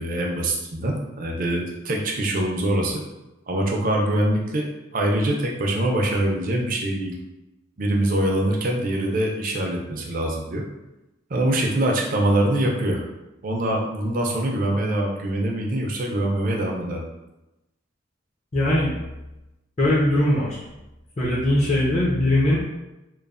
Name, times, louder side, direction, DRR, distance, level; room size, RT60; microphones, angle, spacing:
voice 1, 0.0-3.0 3.5-7.2 7.8-10.7 11.3-13.1 13.4-17.0, right 1 dB, 45° right, 0 dB, 0.4 m, -24 dB
voice 2, 18.5-18.9 19.8-20.6 21.2-22.6, left 1 dB, 35° left, -7 dB, 0.5 m, -20 dB
3.1 x 2.0 x 2.4 m, 0.99 s
head